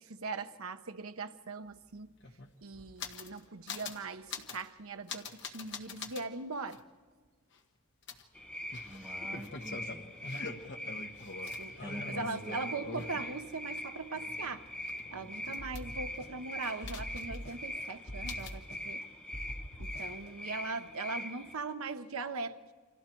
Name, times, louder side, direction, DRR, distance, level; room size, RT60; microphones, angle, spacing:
voice 1, 0.0-2.1 2.6-6.8 10.9-11.0 11.6-11.8 12.1-14.6 15.1-19.0 19.8-22.6, right 3 dB, 80° right, 0.9 m, -40 dB
sound 1, 1.7-1.8 2.0-3.4 3.7-4.0 4.3-4.7 5.1-6.2 6.7-6.8 8.1-13.8 14.2-16.2 16.6-17.5 17.8-17.9 18.3-18.6, left 4 dB, 55° left, 1.4 m, -44 dB
sound 2, 8.3-21.5, left 1 dB, 5° left, 1.5 m, -42 dB
voice 2, 8.8-10.3 11.7-12.6, equal, 15° right, 1.4 m, -46 dB
sound 3, 15.6-16.5 16.8-17.8 18.1-19.0 19.3-20.3, equal, 75° left, 2.6 m, -44 dB
28.5 x 26.0 x 4.6 m
head